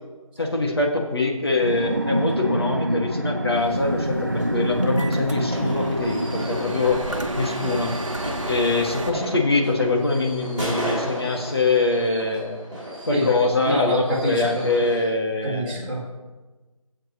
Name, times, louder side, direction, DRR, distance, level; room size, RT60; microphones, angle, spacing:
voice 1, 0.4-7.0 7.3-7.9 8.4-12.6 13.1-15.9, left 3 dB, 45° left, 1 dB, 1.7 m, -23 dB
sound 1, 1.6-9.8, right 1 dB, 35° right, 0.4 m, -27 dB
sound 2, 3.5-9.1, right 2 dB, 60° right, 1.2 m, -34 dB
sound 3, 4.7-15.0, equal, 10° left, 3.1 m, -34 dB
voice 2, 13.6-14.7 15.4-16.0, equal, 20° right, -8 dB, 2.3 m, -26 dB
19.5 x 7.7 x 2.9 m, 1.2 s
figure-of-eight pair, 170°, 18 cm